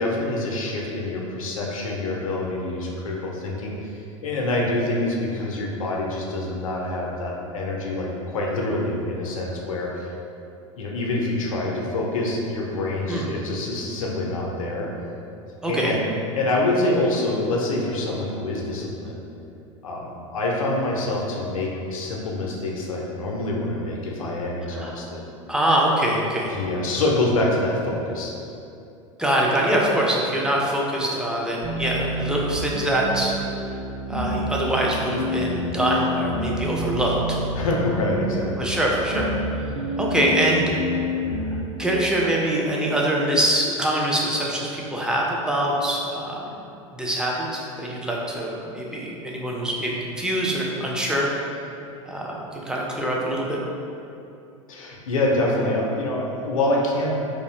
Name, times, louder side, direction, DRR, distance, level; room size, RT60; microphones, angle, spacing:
voice 1, 0.0-10.1 10.8-14.9 15.7-16.0 16.4-19.2 19.8-25.2 26.5-28.3 37.5-38.8 54.7-57.1, left 2 dB, 85° left, -1 dB, 0.4 m, -26 dB
voice 2, 15.6-15.9 24.8-24.9 25.5-26.5 29.2-33.3 34.1-37.4 38.6-39.3 40.0-40.7 41.8-46.4 46.9-51.3 52.1-53.6, right 1 dB, 5° right, -3 dB, 0.3 m, -24 dB
sound 1, 31.6-41.6, equal, 70° right, 0.5 m, -28 dB
2.3 x 2.0 x 2.9 m, 2.7 s
hypercardioid pair, 85°, 17 cm